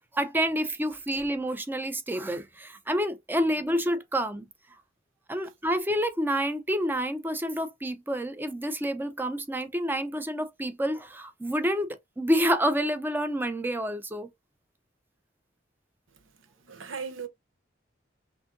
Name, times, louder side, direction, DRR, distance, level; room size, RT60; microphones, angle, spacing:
voice 1, 0.1-4.5 5.3-14.3, equal, 10° right, 0.6 m, -28 dB
voice 2, 16.4-17.3, right 6 dB, 90° right, 0.9 m, -38 dB
6.0 x 2.7 x 2.6 m
head